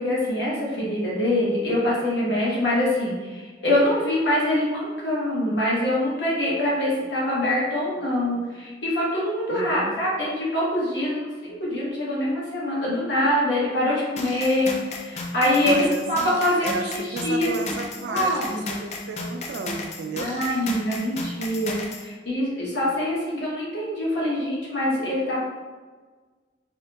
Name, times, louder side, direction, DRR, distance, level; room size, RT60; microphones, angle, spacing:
voice 1, 0.0-17.5 18.1-18.7 20.2-25.4, left 1 dB, 75° left, -6 dB, 1.1 m, -24 dB
voice 2, 9.5-10.0 15.6-20.3, right 3 dB, 85° right, 6 dB, 0.3 m, -33 dB
sound 1, 14.2-22.1, left 3 dB, 40° left, 0.4 m, -34 dB
3.5 x 2.2 x 2.8 m, 1.4 s
head